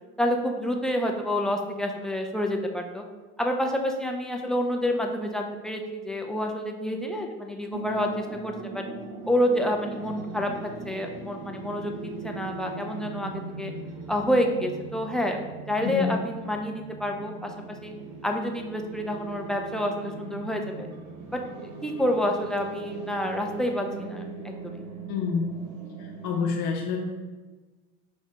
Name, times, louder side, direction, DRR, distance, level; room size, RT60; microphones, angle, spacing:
voice 1, 0.2-3.0 3.4-8.8 9.3-10.5 10.8-13.7 14.1-15.4 15.7-17.5 17.8-17.9 18.2-20.9 21.3-21.4 21.8-24.8, left 1 dB, ahead, 2 dB, 0.5 m, -28 dB
sound 1, 7.7-26.4, right 3 dB, 70° right, 1.1 m, -40 dB
voice 2, 25.1-25.5 26.0-27.1, left 5 dB, 65° left, -1 dB, 0.7 m, -28 dB
5.0 x 2.6 x 3.4 m, 1.3 s
hypercardioid pair, 75°, 32 cm